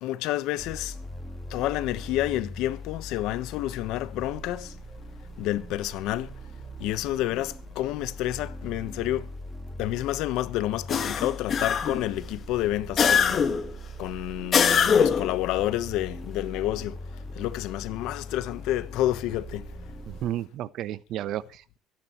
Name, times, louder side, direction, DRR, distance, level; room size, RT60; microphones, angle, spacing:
voice 1, 0.0-1.0 1.5-4.8 5.4-6.3 6.8-9.3 9.8-13.5 14.0-17.0 17.3-19.8, left 14 dB, 70° left, 1.0 m, -29 dB
sound 1, 0.6-20.3, left 1 dB, 5° right, 1.6 m, -41 dB
sound 2, 10.9-12.1 13.0-13.7 14.5-15.3, left 7 dB, 35° left, 1.5 m, -22 dB
voice 2, 20.1-21.8, right 12 dB, 55° right, 0.8 m, -33 dB
24.5 x 10.5 x 3.1 m
cardioid pair, 145°, 0 cm